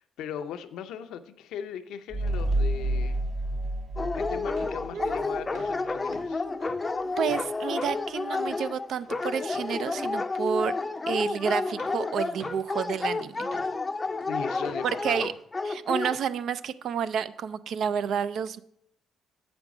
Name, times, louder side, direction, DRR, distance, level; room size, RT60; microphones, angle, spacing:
voice 1, 0.0-3.3 4.0-6.5 14.3-15.2, left 8 dB, 85° left, 9 dB, 0.6 m, -38 dB
sound 1, 2.1-5.5, right 1 dB, 25° right, 0.6 m, -29 dB
sound 2, 3.9-4.0 4.6-4.8 5.1-5.3 5.5-5.8 6.1-8.1 8.4-8.7 9.0-14.3 14.6-14.9 15.2-15.4 15.9-16.0, right 2 dB, 90° right, 1.8 m, -51 dB
Dog, 4.0-16.2, left 3 dB, 25° left, 0.5 m, -30 dB
voice 2, 4.9-5.5 7.2-10.7 11.1-13.5 14.8-15.3 15.6-18.6, right 7 dB, 70° right, 15 dB, 0.4 m, -30 dB
8.2 x 5.2 x 4.8 m, 0.74 s
cardioid pair, 90°, 0 cm